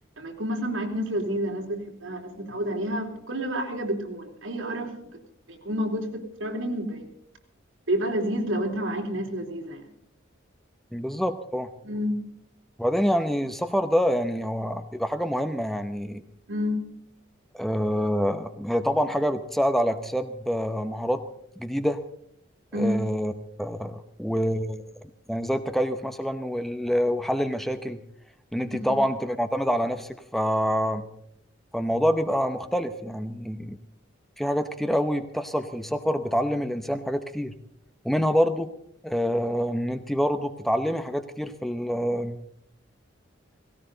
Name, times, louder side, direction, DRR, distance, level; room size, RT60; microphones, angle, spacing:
voice 1, 0.2-5.0 5.5-7.1 7.9-9.9 11.8-12.2 16.5-16.9 22.7-23.0 28.7-29.0, equal, 85° right, 2 dB, 3.7 m, -29 dB
voice 2, 10.9-11.7 12.8-16.2 17.5-21.2 21.6-22.0 22.7-23.3 23.6-24.9 25.3-28.0 28.5-31.1 31.7-33.8 34.4-37.5 38.0-38.7 39.0-42.4, equal, ahead, 8 dB, 0.8 m, -26 dB
18.0 x 17.5 x 3.9 m, 0.73 s
head